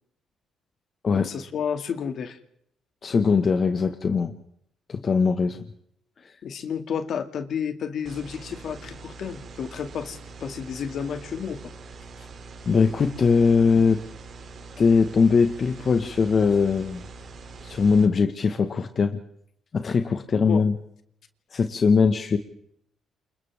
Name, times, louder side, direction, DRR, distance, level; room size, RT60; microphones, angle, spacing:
voice 1, 1.1-2.4 6.4-11.7 20.3-20.6, left 7 dB, 65° left, 7 dB, 2.4 m, -31 dB
voice 2, 3.0-4.3 4.9-5.6 6.2-6.3 12.2-12.3 12.6-14.0 14.8-17.0 17.6-19.2 19.7-20.7 21.5-22.4, left 5 dB, 45° left, 7 dB, 1.6 m, -21 dB
sound 1, 8.1-18.1, right 4 dB, 55° right, 3.2 m, -43 dB
29.0 x 28.0 x 3.7 m, 0.70 s
cardioid pair, 90°, 0 cm